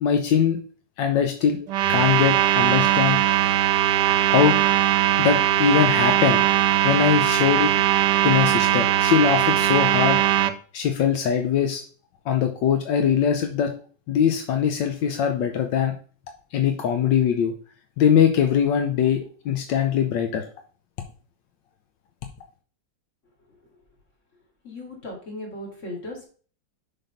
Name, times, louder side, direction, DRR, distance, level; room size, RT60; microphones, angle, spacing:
voice 1, 0.0-0.6 1.0-1.6 1.9-3.2 4.3-4.6 5.2-6.4 6.8-7.7 8.2-10.2 10.7-11.8 12.3-13.7 14.1-15.9 16.5-17.5 18.0-20.4, left 8 dB, 85° left, 5 dB, 1.4 m, -21 dB
sound 1, 1.7-10.5, right 12 dB, 75° right, 1.2 m, -20 dB
voice 2, 24.6-26.2, left 1 dB, 40° left, -1 dB, 2.8 m, -36 dB
6.7 x 4.1 x 5.7 m, 0.42 s
omnidirectional pair, 2.0 m